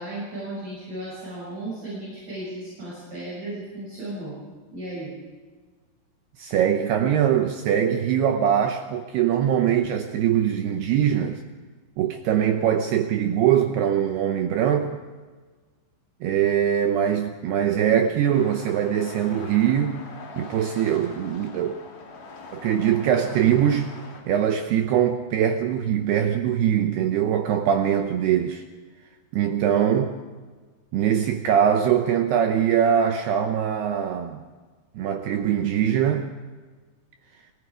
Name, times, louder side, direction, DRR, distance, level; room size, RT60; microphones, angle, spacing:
voice 1, 0.0-4.4 4.7-5.1, right 1 dB, 35° right, 8.2 m, -35 dB
voice 2, 6.4-11.4 12.0-15.0 16.2-20.0 20.4-21.8 22.5-23.9 24.3-28.6 29.3-30.1 30.9-34.4 35.0-36.3, right 9 dB, 75° right, 2.6 m, -22 dB
sound 1, 18.3-24.2, left 3 dB, 65° left, 5.2 m, -42 dB
28.5 x 18.5 x 5.0 m
omnidirectional pair, 5.4 m